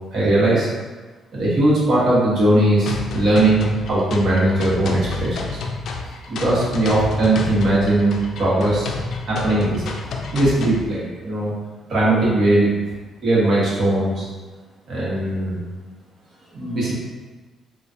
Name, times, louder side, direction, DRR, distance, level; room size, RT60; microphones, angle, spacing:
voice 1, 0.1-0.7 1.3-5.5 6.3-8.9 9.3-9.8 10.3-11.5 11.9-12.7 13.2-14.3 14.9-15.6 16.5-16.9, right 1 dB, 65° right, -7 dB, 1.3 m, -19 dB
sound 1, 2.9-10.9, left 4 dB, 70° left, 0.4 m, -30 dB
3.8 x 2.4 x 2.7 m, 1.3 s
cardioid pair, 90°, 0 cm